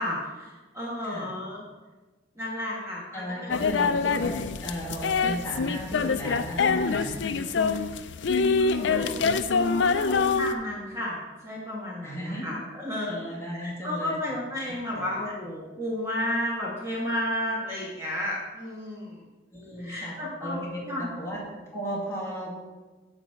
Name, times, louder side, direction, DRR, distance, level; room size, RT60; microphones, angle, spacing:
voice 1, 0.0-1.6 2.4-3.5 7.6-7.9 8.6-9.2 9.5-19.2 19.8-21.1, left 1 dB, 15° right, -5 dB, 1.4 m, -33 dB
voice 2, 3.1-7.2 12.0-12.5 13.0-14.1 15.0-15.1 19.5-20.2 20.4-22.6, equal, 15° left, -6 dB, 2.0 m, -35 dB
sound 1, 3.5-10.5, left 4 dB, 70° left, 0.5 m, -25 dB
8.9 x 4.1 x 6.9 m, 1.2 s
head